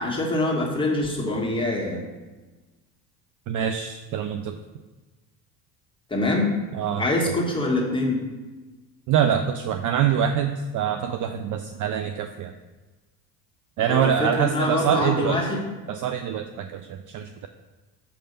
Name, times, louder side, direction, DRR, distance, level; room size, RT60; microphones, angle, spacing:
voice 1, 0.0-2.0 6.1-6.5 7.0-8.2 13.9-15.6, left 2 dB, 10° left, -3 dB, 1.8 m, -24 dB
voice 2, 3.5-4.6 6.7-7.3 9.1-12.5 13.8-15.5 15.9-17.5, right 8 dB, 45° right, 7 dB, 0.4 m, -25 dB
6.6 x 3.4 x 5.3 m, 1.2 s
hypercardioid pair, 65°, 48 cm